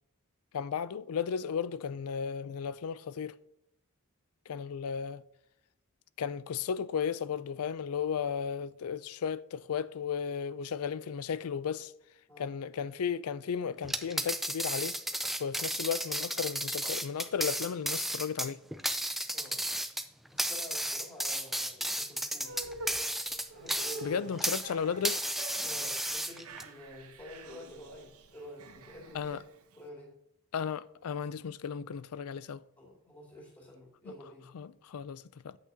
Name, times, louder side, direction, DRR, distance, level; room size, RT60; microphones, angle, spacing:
voice 1, 0.5-3.4 4.5-5.2 6.2-11.9 12.4-15.0 15.4-18.6 24.0-25.2 29.1-29.4 30.5-32.6 34.5-35.6, left 7 dB, 85° left, 0.4 m, -34 dB
sound 1, 13.8-24.7 25.0-26.6, right 1 dB, ahead, 0.4 m, -33 dB
voice 2, 19.3-19.7 20.3-22.7 23.5-24.4 25.6-29.4 29.8-30.2 32.8-34.5, equal, 20° left, 2.5 m, -49 dB
sound 2, 22.4-29.8, right 2 dB, 85° right, 1.0 m, -48 dB
8.5 x 8.5 x 2.8 m
head